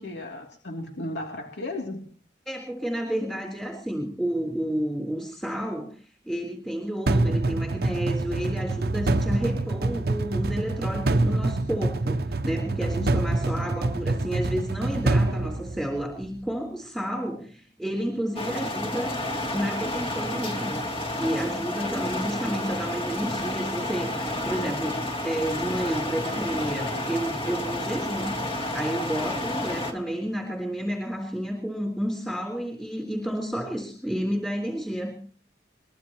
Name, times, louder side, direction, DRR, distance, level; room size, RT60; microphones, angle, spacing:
voice 1, 0.0-2.1 13.0-13.2, left 1 dB, 80° left, 2 dB, 2.8 m, -35 dB
voice 2, 2.5-19.2 19.5-20.8 21.1-28.4 28.7-35.2, equal, 5° left, 2 dB, 3.5 m, -31 dB
sound 1, 7.1-16.3, right 2 dB, 60° right, 0.8 m, -26 dB
sound 2, 18.4-29.9, left 1 dB, 30° left, 2.8 m, -30 dB
22.5 x 21.5 x 3.0 m, 0.42 s
head